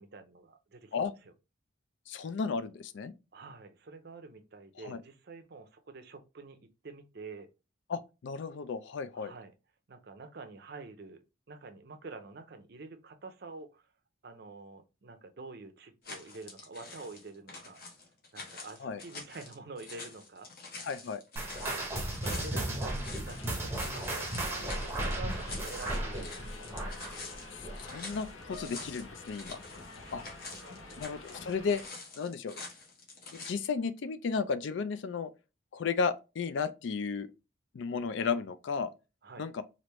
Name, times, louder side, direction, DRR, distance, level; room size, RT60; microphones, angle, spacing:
voice 1, 0.0-0.9 1.3-1.4 3.3-6.6 6.8-7.5 9.1-9.5 9.9-13.9 14.2-17.8 18.3-20.5 21.5-27.3 30.0-31.0 39.2-39.4, right 3 dB, 50° right, 0.5 m, -48 dB
voice 2, 2.1-3.1 4.8-5.0 7.9-9.3 18.8-19.0 20.8-21.2 27.8-29.6 30.1-30.2 31.0-31.8 32.2-32.6 33.3-35.3 35.7-37.3 37.7-38.9 39.4-39.6, left 5 dB, 65° left, 0.4 m, -34 dB
sound 1, 16.0-33.5, left 3 dB, 45° left, 0.9 m, -47 dB
sound 2, 21.4-28.2 28.5-28.8 29.4-29.5 30.3-30.4, right 1 dB, 10° right, 0.7 m, -35 dB
Subway metro underground, 23.3-31.9, left 3 dB, 80° left, 0.8 m, -48 dB
3.3 x 2.5 x 3.0 m
head